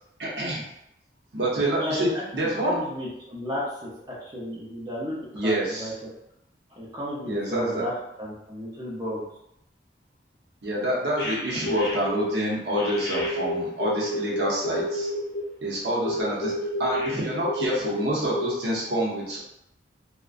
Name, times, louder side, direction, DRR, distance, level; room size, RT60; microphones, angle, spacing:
voice 1, 0.2-0.6 1.3-2.8 5.3-5.9 7.2-7.8 10.6-15.1 15.6-16.5 16.8-19.4, right 1 dB, 70° right, -4 dB, 0.7 m, -27 dB
voice 2, 1.8-6.1 6.8-7.9 8.2-9.2, left 1 dB, 20° right, -7 dB, 0.5 m, -33 dB
sound 1, 11.2-12.3 12.7-15.4 16.0-18.0 18.3-18.5, equal, 70° left, 0.5 m, -29 dB
2.5 x 2.1 x 2.4 m, 0.80 s
head